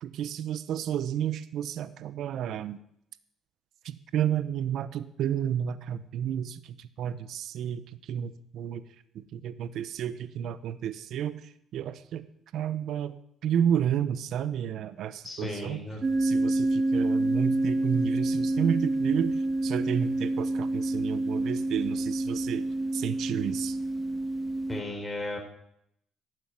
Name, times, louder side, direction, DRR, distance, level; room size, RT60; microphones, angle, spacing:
voice 1, 0.0-2.8 3.8-7.8 8.1-8.8 9.1-11.4 11.7-12.2 12.5-13.2 13.4-15.8 16.2-19.4 19.6-22.6 22.9-23.8, right 9 dB, 75° right, 14 dB, 0.9 m, -31 dB
voice 2, 15.2-16.0 24.7-25.4, left 1 dB, 15° left, 1 dB, 4.4 m, -35 dB
sound 1, 16.0-24.8, right 2 dB, 35° right, 1.6 m, -28 dB
12.5 x 8.1 x 9.4 m, 0.73 s
cardioid pair, 90°, 0 cm